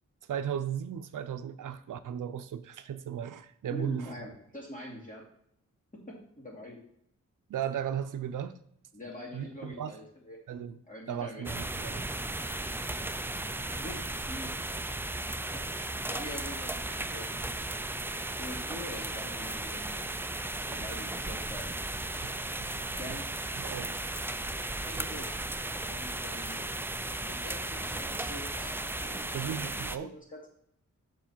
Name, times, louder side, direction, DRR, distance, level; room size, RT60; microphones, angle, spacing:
voice 1, 0.3-4.1 7.5-8.6 9.3-10.0 10.5-10.8 11.1-12.1 22.2-23.2 23.6-23.9 29.3-30.1, right 9 dB, 90° right, 11 dB, 0.6 m, -36 dB
voice 2, 3.7-5.2 5.9-6.8 8.9-10.4 10.9-11.6 13.7-14.0 14.3-14.5 15.5-15.7 16.1-17.5 18.4-20.0 20.6-21.7 23.0-23.3 24.7-25.3 25.9-26.7 27.2-30.5, left 1 dB, 25° left, -2 dB, 2.7 m, -44 dB
sound 1, 11.4-30.0, right 2 dB, 10° right, 0.3 m, -35 dB
7.1 x 6.2 x 4.4 m, 0.70 s
wide cardioid pair, 100°, 30 cm